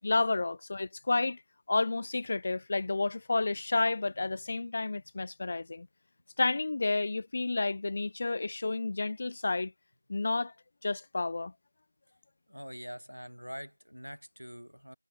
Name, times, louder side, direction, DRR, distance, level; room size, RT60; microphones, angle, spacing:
voice 1, 0.0-1.4 1.7-5.9 6.4-9.7 10.1-10.5 10.8-11.5, left 3 dB, 15° left, 0.8 m, -30 dB
voice 2, 12.5-15.0, equal, 85° right, 7.6 m, -44 dB
figure-of-eight pair, 175°, 0 cm